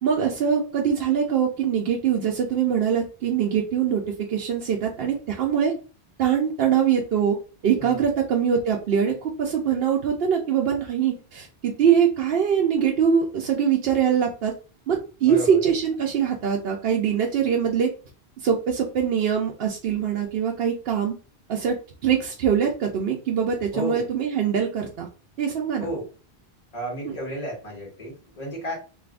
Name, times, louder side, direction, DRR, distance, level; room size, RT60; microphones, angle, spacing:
voice 1, 0.0-5.7 6.2-7.4 7.6-14.5 14.9-17.9 18.4-21.1 21.5-21.8 22.0-25.1 25.4-25.9 27.0-27.2, right 8 dB, 70° right, 0 dB, 0.8 m, -23 dB
voice 2, 15.2-15.6 23.7-24.1 25.8-26.1 26.7-28.7, equal, 40° left, -4 dB, 1.5 m, -32 dB
3.4 x 2.6 x 2.4 m, 0.35 s
omnidirectional pair, 1.1 m